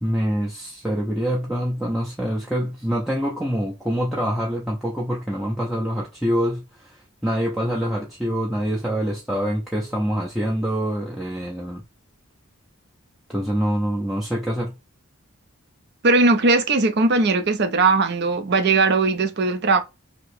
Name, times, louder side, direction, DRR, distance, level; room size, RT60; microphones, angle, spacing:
voice 1, 0.0-11.8 13.3-14.8, equal, ahead, 0.5 m, -25 dB
voice 2, 16.0-19.8, right 3 dB, 50° right, 0.5 m, -19 dB
2.9 x 2.8 x 3.2 m
head